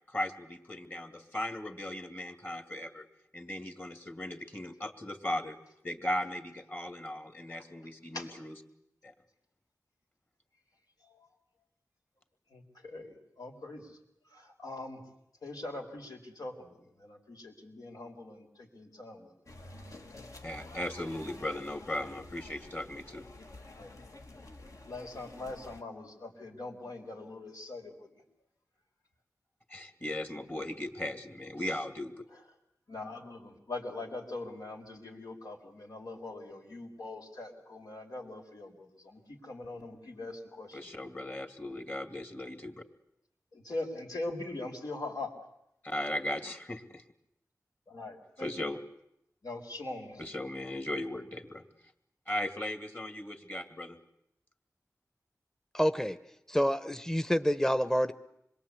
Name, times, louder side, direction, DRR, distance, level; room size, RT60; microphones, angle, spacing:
voice 1, 0.1-3.1 3.3-5.6 5.8-8.5 9.0-9.1 20.4-23.2 29.7-32.1 40.7-42.8 45.8-47.0 48.4-48.8 50.2-51.6 52.3-54.0, left 1 dB, 30° left, 7 dB, 2.4 m, -37 dB
voice 2, 7.5-8.4 11.0-11.3 12.5-14.0 14.3-15.0 15.4-19.3 23.8-23.9 24.8-28.2 32.3-32.4 32.9-41.1 43.5-45.3 47.9-48.6 49.4-50.2, left 2 dB, 80° left, 1 dB, 4.5 m, -42 dB
sound 1, 19.5-25.8, left 2 dB, 60° left, 1.7 m, -49 dB
voice 3, 55.7-56.2 56.5-58.1, equal, 10° left, 11 dB, 0.9 m, -27 dB
26.5 x 22.0 x 8.5 m, 0.79 s
wide cardioid pair, 90°, 6 cm